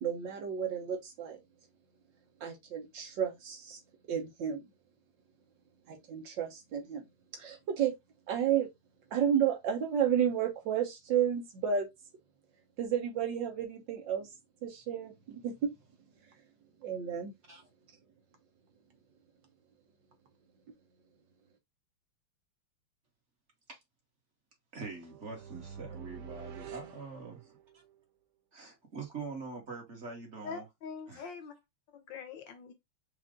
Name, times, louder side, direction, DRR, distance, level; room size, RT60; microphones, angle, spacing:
voice 1, 0.0-1.4 2.4-3.8 4.1-4.7 5.9-7.0 7.3-7.9 8.3-8.7 9.1-11.9 12.8-14.3 14.6-15.7 16.8-17.3, right 8 dB, 65° right, 1.5 m, -32 dB
voice 2, 24.7-27.8 28.5-30.6 31.1-31.2, right 4 dB, 35° right, 1.6 m, -44 dB
sound 1, 24.9-27.9, right 7 dB, 90° right, 1.7 m, -48 dB
voice 3, 30.4-31.5 31.9-32.7, left 5 dB, 65° left, 1.4 m, -43 dB
5.0 x 2.5 x 3.8 m
omnidirectional pair, 2.3 m